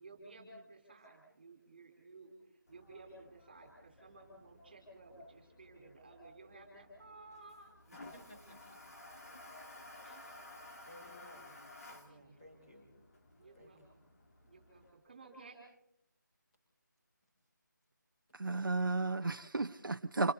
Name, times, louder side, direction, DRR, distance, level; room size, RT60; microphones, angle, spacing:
voice 1, 0.0-8.6 9.9-10.2 13.4-13.8 14.4-15.6, right 2 dB, 30° right, 4.5 m, -56 dB
Toilet flush, 2.7-14.9, left 2 dB, 45° left, 2.8 m, -56 dB
voice 2, 7.9-8.8 9.3-9.6 10.9-12.9 13.5-13.9, equal, 15° left, 7.2 m, -59 dB
voice 3, 18.3-20.3, right 3 dB, 85° right, 1.0 m, -33 dB
29.0 x 28.0 x 4.2 m
figure-of-eight pair, 180°, 11 cm